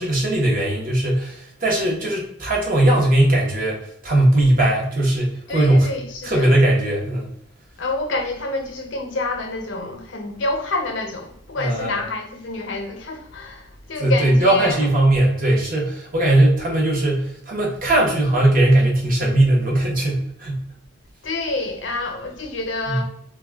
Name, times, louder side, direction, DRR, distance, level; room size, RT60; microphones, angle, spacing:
voice 1, 0.0-5.9 6.2-7.3 11.6-11.9 14.0-20.6 22.9-23.0, right 1 dB, 45° right, 0.9 m, -19 dB
voice 2, 5.5-6.5 7.8-14.9 21.2-23.0, left 2 dB, 70° left, 0.6 m, -28 dB
2.3 x 2.2 x 3.4 m
head